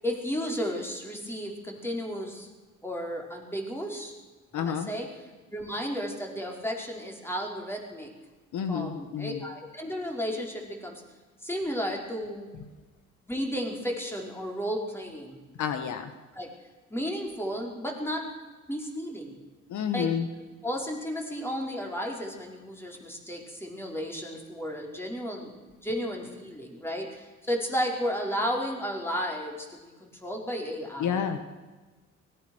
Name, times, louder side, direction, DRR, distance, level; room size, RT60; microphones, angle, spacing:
voice 1, 0.0-2.5 2.8-4.1 4.5-5.1 5.5-8.1 8.7-11.0 11.4-12.5 13.3-15.4 16.3-16.5 16.9-18.3 18.7-19.3 19.9-20.1 20.6-31.2, equal, 10° left, 0 dB, 5.4 m, -33 dB
voice 2, 4.5-4.9 8.5-9.4 15.6-16.1 19.7-20.3 31.0-31.4, left 7 dB, 75° left, 8 dB, 1.8 m, -29 dB
24.0 x 19.0 x 6.5 m, 1.3 s
cardioid pair, 90°, 30 cm